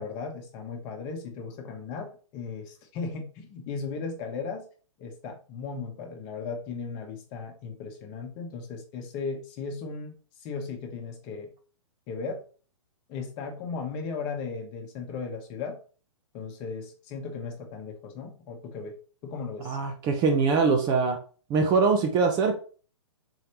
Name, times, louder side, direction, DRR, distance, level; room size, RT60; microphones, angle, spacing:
voice 1, 0.0-4.6 5.0-11.5 12.1-12.4 13.1-15.8 16.3-19.0 19.2-19.8, left 5 dB, 30° left, 3 dB, 1.0 m, -36 dB
voice 2, 19.6-21.2 21.5-22.5, right 4 dB, 25° right, 5 dB, 0.6 m, -23 dB
4.0 x 3.2 x 3.0 m, 0.38 s
figure-of-eight pair, 120°, 16 cm